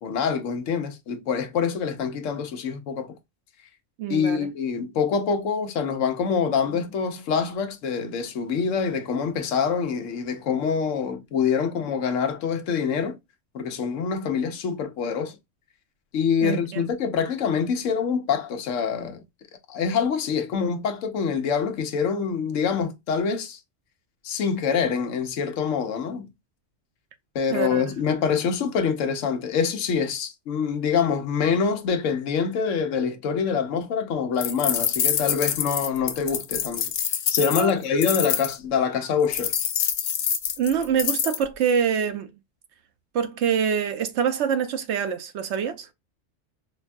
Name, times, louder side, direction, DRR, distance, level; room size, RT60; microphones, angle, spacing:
voice 1, 0.0-3.2 4.1-13.2 13.5-15.4 16.1-19.2 19.7-23.6 24.2-26.3 27.3-36.9 37.3-39.5, left 6 dB, 80° left, 1.1 m, -25 dB
voice 2, 4.0-4.5 16.4-16.9 27.5-28.0 37.6-37.7 40.6-42.3 43.1-45.9, right 7 dB, 70° right, 0.8 m, -25 dB
sound 1, 34.4-38.5 39.3-41.4, left 8 dB, 60° left, 0.7 m, -26 dB
4.5 x 2.2 x 2.5 m
omnidirectional pair, 1.3 m